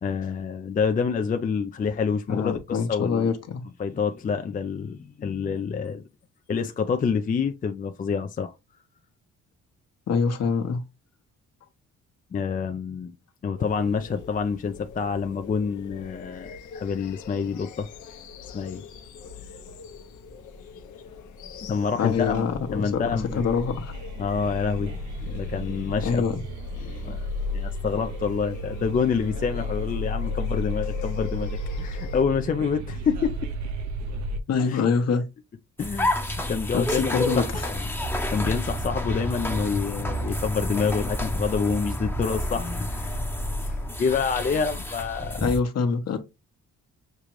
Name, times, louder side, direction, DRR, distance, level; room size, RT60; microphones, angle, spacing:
voice 1, 0.0-3.3 3.8-6.0 6.5-8.5 12.3-13.1 13.4-17.9 18.4-18.9 21.7-22.4 22.7-23.4 24.2-26.2 26.8-31.5 31.8-33.5 34.7-34.8 35.8-36.1 36.5-37.9 38.3-43.2 43.7-45.4, left 6 dB, 30° left, 0.4 m, -27 dB
voice 2, 2.3-3.6 10.1-10.8 22.0-23.9 26.0-26.4 34.5-35.2 36.7-37.6 38.4-38.5 45.4-46.2, left 5 dB, 55° left, 1.1 m, -25 dB
sound 1, 13.6-32.2, left 5 dB, 75° left, 0.9 m, -43 dB
sound 2, 22.1-34.4, left 1 dB, 65° right, 0.8 m, -33 dB
sound 3, 35.8-45.6, left 1 dB, 5° left, 0.8 m, -29 dB
6.6 x 2.4 x 3.1 m
cardioid pair, 90°, 30 cm